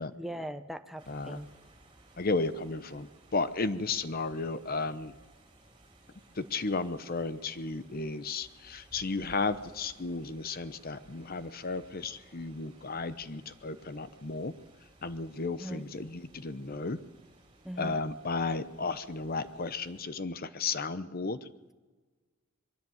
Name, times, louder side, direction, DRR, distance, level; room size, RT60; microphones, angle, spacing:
voice 1, 0.1-1.5 15.6-15.8 17.6-18.0, equal, ahead, 7 dB, 0.9 m, -40 dB
sound 1, 1.0-20.0, right 1 dB, 25° right, 3.7 m, -59 dB
voice 2, 1.1-1.4 2.2-5.2 6.3-14.5 15.0-17.0 17.8-21.5, left 3 dB, 45° left, 13 dB, 0.9 m, -34 dB
22.0 x 16.5 x 7.9 m, 1.3 s
head